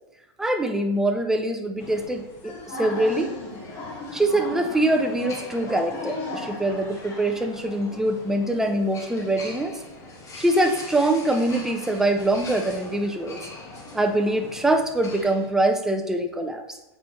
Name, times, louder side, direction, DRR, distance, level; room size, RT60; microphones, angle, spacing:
voice 1, 0.4-3.3 4.1-9.8 10.4-13.4 13.9-16.6, right 1 dB, 5° right, 4 dB, 0.4 m, -24 dB
sound 1, 1.8-15.2, left 2 dB, 50° left, 1.8 m, -41 dB
sound 2, 2.7-15.5, left 2 dB, 20° left, 1.1 m, -42 dB
7.2 x 4.3 x 3.1 m, 1.0 s
supercardioid pair, 150°, 15 cm